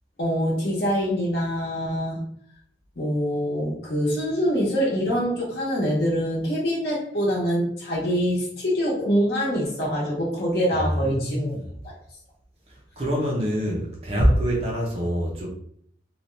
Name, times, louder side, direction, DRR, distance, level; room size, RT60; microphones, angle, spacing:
voice 1, 0.2-2.2 3.0-11.6 11.8-11.9, equal, 60° left, 0.9 m, -25 dB
voice 2, 10.7-11.7 13.0-15.5, equal, 35° right, 0.6 m, -24 dB
2.7 x 2.2 x 3.1 m
head